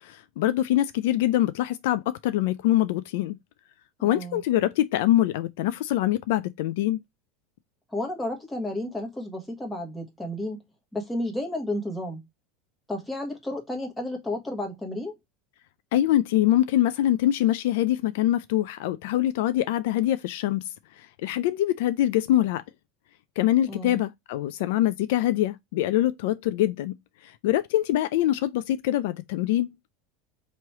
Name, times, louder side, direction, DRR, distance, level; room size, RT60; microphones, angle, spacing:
voice 1, 0.0-3.4 4.0-7.0 15.9-20.6 21.2-22.6 23.4-26.9 27.2-29.7, left 13 dB, 70° left, 0.3 m, -24 dB
voice 2, 4.0-4.4 7.9-10.6 10.9-12.2 12.9-15.1 23.7-24.0, left 1 dB, 5° left, 1.3 m, -32 dB
3.1 x 2.9 x 4.5 m
supercardioid pair, 140°, 0 cm